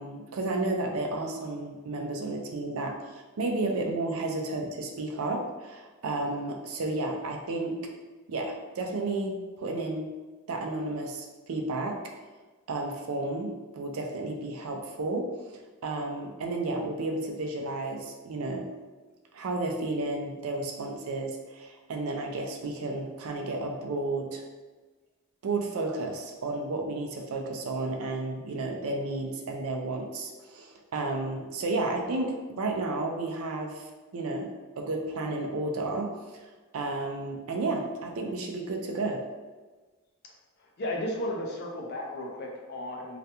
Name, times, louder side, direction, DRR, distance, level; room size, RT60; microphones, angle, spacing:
voice 1, 0.0-7.8 8.3-10.1 10.5-12.0 12.7-15.3 15.8-18.7 19.3-24.4 25.4-34.5 34.8-36.5 36.7-39.2, right 2 dB, 80° right, 2 dB, 0.4 m, -32 dB
voice 2, 40.6-43.2, left 1 dB, 50° left, 0 dB, 0.4 m, -34 dB
2.4 x 2.2 x 2.8 m, 1.3 s
head